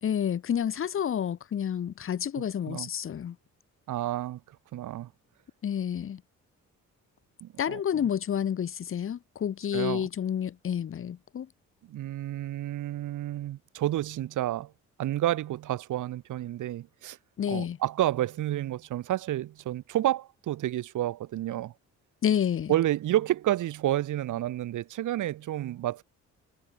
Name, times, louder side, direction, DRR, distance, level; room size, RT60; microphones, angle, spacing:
voice 1, 0.0-3.3 5.6-6.2 7.6-11.5 17.4-17.8 22.2-22.7, left 9 dB, 45° left, 1.0 m, -29 dB
voice 2, 3.9-4.4 4.7-5.1 7.4-8.1 9.7-10.1 11.9-14.7 15.0-17.2 17.5-21.7 22.7-26.0, right 13 dB, 80° right, 4.8 m, -30 dB
cardioid pair, 90°, 30 cm